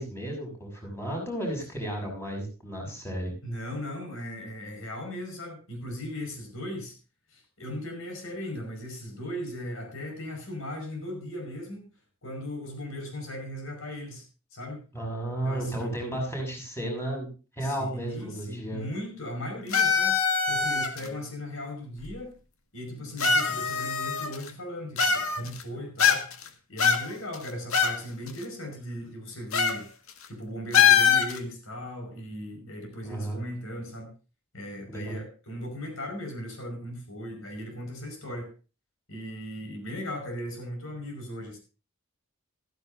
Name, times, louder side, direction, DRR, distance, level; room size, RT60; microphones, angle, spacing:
voice 1, 0.0-3.3 14.9-18.9 33.0-33.4 34.9-35.2, right 1 dB, 10° left, 1 dB, 6.1 m, -33 dB
voice 2, 3.4-6.9 7.3-11.8 12.2-14.3 14.5-14.8 15.4-15.9 17.6-20.2 20.5-22.4 22.7-26.3 26.7-29.9 30.3-34.1 34.5-38.5 39.1-41.6, equal, 70° left, 5 dB, 5.4 m, -37 dB
sound 1, 19.7-21.1 22.0-22.1 23.2-24.5 25.0-25.6 26.0-26.5 26.8-28.0 28.3-28.4 29.5-29.8 30.1-30.3 30.7-31.4, left 6 dB, 90° left, 1.8 m, -23 dB
15.5 x 14.5 x 2.6 m, 0.33 s
head